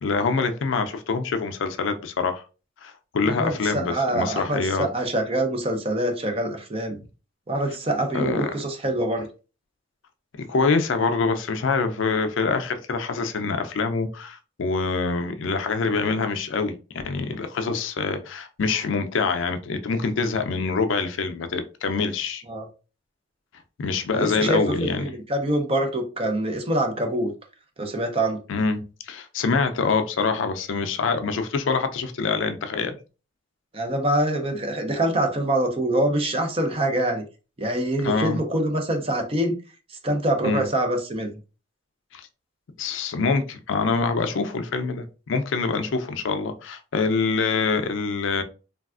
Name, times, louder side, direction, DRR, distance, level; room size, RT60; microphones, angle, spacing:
voice 1, 0.0-2.4 2.8-4.9 8.1-8.5 10.4-16.8 17.0-22.4 23.8-25.1 28.5-33.0 38.0-38.4 40.4-40.7 42.1-42.3 42.8-48.4, left 4 dB, 70° left, 0.4 m, -25 dB
voice 2, 3.4-7.0 7.5-9.3 22.5-22.6 24.1-27.3 27.8-28.4 33.7-37.2 37.6-39.6 39.9-41.3, right 1 dB, 30° right, 0.6 m, -25 dB
3.3 x 2.3 x 2.4 m
head